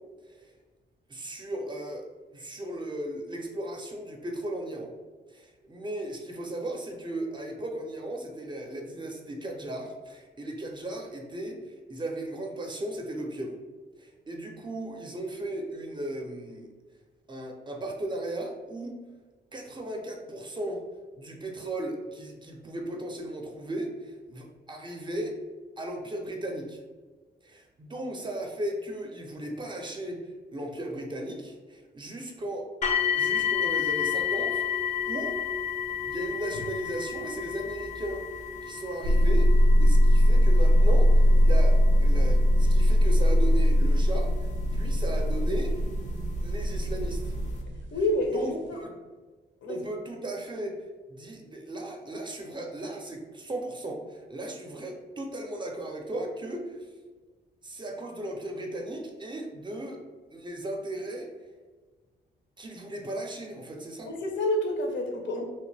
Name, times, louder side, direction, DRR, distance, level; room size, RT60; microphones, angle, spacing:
voice 1, 1.1-2.1 2.3-4.9 5.3-13.6 14.0-16.7 17.3-19.0 19.5-20.9 21.2-25.4 25.8-26.8 27.4-32.7 33.1-34.8 35.1-35.4 36.1-38.3 38.6-45.8 46.4-47.4 48.3-49.0 49.7-56.9 57.6-60.0 60.3-61.3 62.6-64.1, right 1 dB, 25° right, 2 dB, 0.4 m, -36 dB
sound 1, 32.8-45.7 46.5-46.6 47.2-47.3, left 8 dB, 40° left, 0.4 m, -32 dB
sound 2, 39.0-47.9, equal, 80° right, 0.4 m, -21 dB
voice 2, 47.9-48.8 49.6-49.8 64.0-65.4, left 1 dB, 75° left, 2 dB, 0.6 m, -28 dB
2.9 x 2.5 x 3.2 m, 1.3 s
wide cardioid pair, 130°, 19 cm